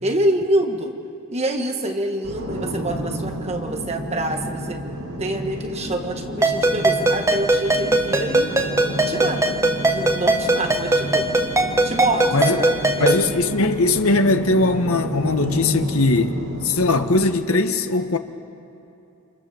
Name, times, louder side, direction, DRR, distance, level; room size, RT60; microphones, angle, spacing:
voice 1, 0.0-1.0 1.3-4.8 5.2-8.5 9.1-9.6 9.9-11.3 11.8-13.1, right 1 dB, 30° right, 4 dB, 1.6 m, -26 dB
sound 1, 2.2-17.2, equal, 85° right, 5.7 m, -31 dB
Ringtone, 6.4-13.3, right 2 dB, 15° right, 1.5 m, -20 dB
voice 2, 12.3-12.6 13.0-18.2, left 2 dB, 70° left, 7 dB, 1.5 m, -20 dB
29.5 x 28.0 x 7.2 m, 2.8 s
head